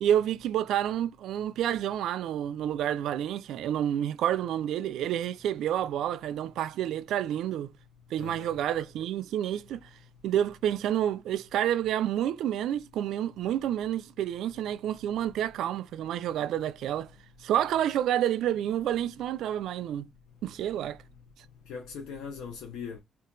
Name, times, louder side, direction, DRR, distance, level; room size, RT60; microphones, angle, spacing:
voice 1, 0.0-7.7 8.1-9.9 10.2-17.1 17.4-20.1 20.4-21.0, right 11 dB, 80° right, 0.3 m, -29 dB
voice 2, 8.2-8.5 21.7-23.0, left 6 dB, 90° left, 0.6 m, -40 dB
2.6 x 2.4 x 3.8 m
cardioid pair, 90°, 0 cm